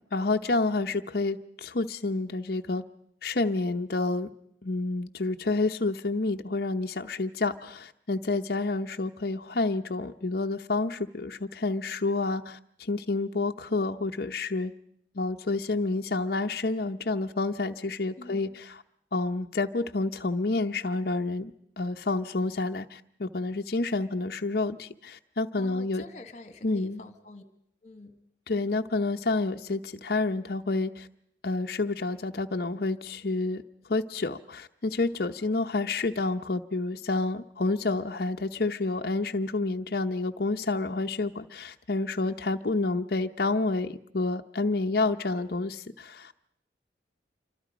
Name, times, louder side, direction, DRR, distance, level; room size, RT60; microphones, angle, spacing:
voice 1, 0.1-2.8 3.2-4.3 4.6-14.7 15.1-18.8 19.1-26.0 26.6-27.0 28.5-31.1 31.4-33.6 33.9-46.5, left 3 dB, 60° left, 5 dB, 0.8 m, -29 dB
voice 2, 18.2-18.6 25.6-27.4 27.8-28.2, left 2 dB, 40° left, 9 dB, 1.9 m, -47 dB
27.5 x 24.5 x 5.1 m, 0.70 s
head